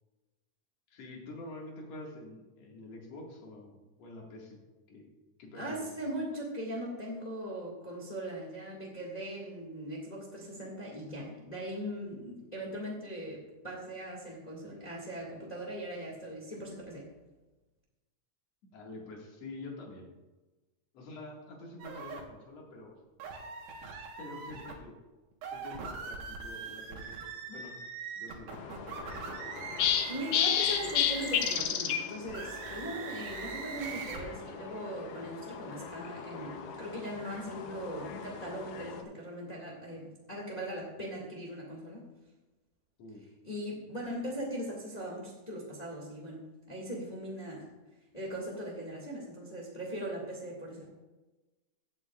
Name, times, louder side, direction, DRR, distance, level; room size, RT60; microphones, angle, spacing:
voice 1, 0.9-4.6 4.9-5.0 5.4-6.0 18.7-20.1 20.9-23.0 24.2-24.9 25.5-27.1 27.5-27.7 28.1-28.5 43.0-43.2, left 2 dB, 55° left, -2 dB, 3.0 m, -46 dB
voice 2, 5.5-17.1 30.0-42.1 43.4-47.7 48.1-50.9, right 1 dB, 15° left, -2 dB, 1.4 m, -40 dB
sound 1, 21.8-22.2 23.2-24.8 25.3-31.7 32.3-34.2, right 5 dB, 75° right, 2.8 m, -42 dB
sound 2, 28.5-39.0, left 8 dB, 80° left, 2.4 m, -34 dB
16.5 x 8.9 x 2.4 m, 1.1 s
omnidirectional pair, 3.7 m